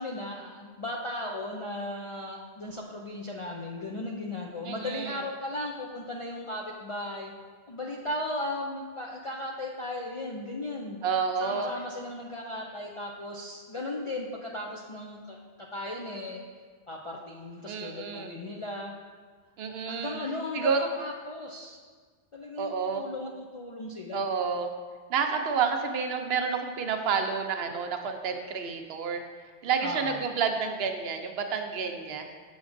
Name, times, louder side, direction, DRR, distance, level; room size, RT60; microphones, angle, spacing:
voice 1, 0.0-7.3 7.7-11.0 11.4-16.4 16.9-18.9 19.9-21.8 22.3-24.3 29.8-30.2, left 1 dB, 50° left, -2 dB, 0.3 m, -36 dB
voice 2, 4.6-5.2 11.0-11.7 17.7-18.3 19.6-20.2 20.5-20.8 22.6-23.0 24.1-24.7 25.1-29.2 29.6-32.3, right 6 dB, 70° right, 5 dB, 0.8 m, -29 dB
7.0 x 6.1 x 2.5 m, 1.5 s
omnidirectional pair, 1.1 m